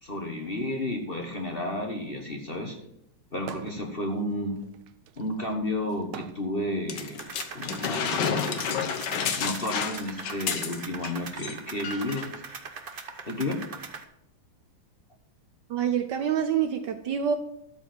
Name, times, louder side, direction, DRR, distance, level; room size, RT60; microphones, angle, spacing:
voice 1, 0.0-2.8 3.3-4.6 5.2-8.7 9.4-12.3 13.3-13.6, left 1 dB, 30° left, 2 dB, 1.3 m, -32 dB
sound 1, 3.4-3.9 4.3-8.7 9.6-11.2, right 11 dB, 85° right, 1.5 m, -44 dB
sound 2, 6.9-11.1 11.4-11.6 11.8-12.3 13.0-13.1, left 7 dB, 60° left, 1.5 m, -30 dB
sound 3, 7.2-14.0, right 5 dB, 50° right, 0.6 m, -41 dB
voice 2, 15.7-17.4, right 8 dB, 65° right, 8 dB, 1.2 m, -26 dB
13.0 x 4.8 x 7.9 m, 0.77 s
omnidirectional pair, 2.3 m